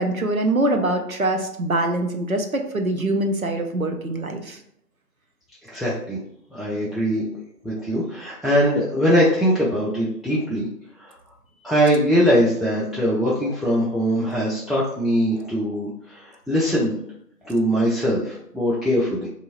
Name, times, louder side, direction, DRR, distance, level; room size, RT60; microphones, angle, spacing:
voice 1, 0.0-4.6, right 1 dB, 60° right, 4 dB, 0.5 m, -23 dB
voice 2, 5.7-6.2 6.5-7.2 7.6-10.7 11.0-11.1 11.6-17.0 17.4-19.3, equal, ahead, -6 dB, 0.4 m, -21 dB
3.1 x 2.6 x 2.9 m, 0.74 s
figure-of-eight pair, 180°, 49 cm